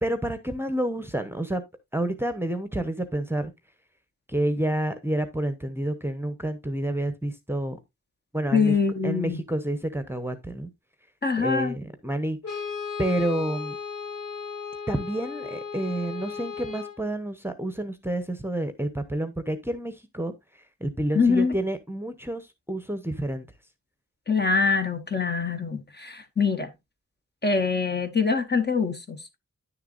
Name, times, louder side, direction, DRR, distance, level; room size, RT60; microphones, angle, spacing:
voice 1, 0.0-1.6 1.9-3.5 4.3-7.8 8.3-8.7 9.0-10.7 11.4-12.6 13.0-13.8 14.9-20.3 20.8-23.5, right 1 dB, 5° right, 0.9 m, -29 dB
voice 2, 8.5-9.4 11.2-11.7 21.1-21.6 24.3-26.7 27.4-29.4, left 5 dB, 30° left, 1.1 m, -24 dB
Brass instrument, 12.4-17.0, left 5 dB, 70° left, 2.3 m, -35 dB
10.0 x 6.7 x 2.5 m
wide cardioid pair, 115°, 33 cm